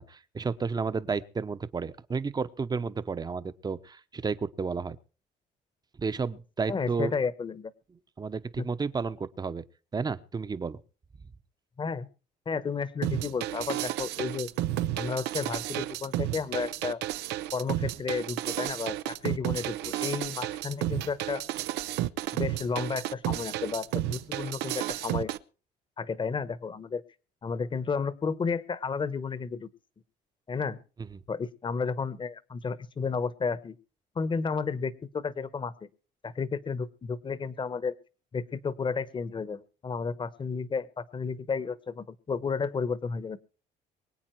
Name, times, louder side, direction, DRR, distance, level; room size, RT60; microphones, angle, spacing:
voice 1, 0.0-5.0 6.0-7.1 8.2-9.6 9.9-10.8 31.1-31.2, right 5 dB, 25° right, 0.9 m, -32 dB
voice 2, 6.7-7.7 8.6-8.7 11.8-12.1 12.5-14.5 15.0-17.0 17.5-21.4 22.3-25.3 26.0-27.0 27.4-29.7 30.5-30.8 31.3-33.8 34.1-35.9 36.2-37.9 38.3-43.4, left 5 dB, 30° left, 1.1 m, -32 dB
sound 1, 13.0-25.4, right 14 dB, 90° right, 0.7 m, -32 dB
24.0 x 8.5 x 4.6 m
cardioid pair, 110°, 17 cm